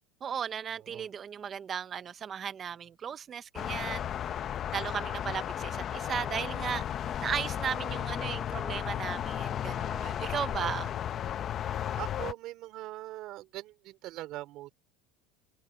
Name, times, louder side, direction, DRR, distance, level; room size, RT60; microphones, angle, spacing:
voice 1, 0.2-4.1 4.7-6.8 7.2-10.9, right 8 dB, 25° right, 0.7 m, -36 dB
voice 2, 0.8-1.1 10.3-10.8 11.9-14.7, right 16 dB, 50° right, 4.3 m, -42 dB
sound 1, 3.5-12.3, left 10 dB, 35° left, 0.8 m, -34 dB
supercardioid pair, 145°, 0 cm